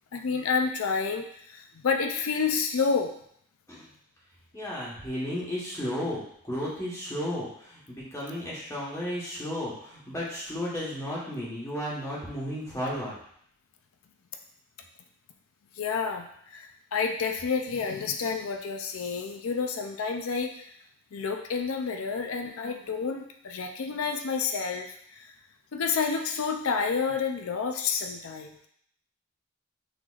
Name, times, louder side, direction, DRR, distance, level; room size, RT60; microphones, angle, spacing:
voice 1, 0.1-3.1 15.8-20.7 21.1-25.3 25.7-28.7, left 5 dB, 80° left, 4 dB, 0.4 m, -29 dB
voice 2, 4.5-13.2, equal, 15° left, -7 dB, 1.2 m, -34 dB
6.2 x 3.2 x 2.4 m, 0.67 s
head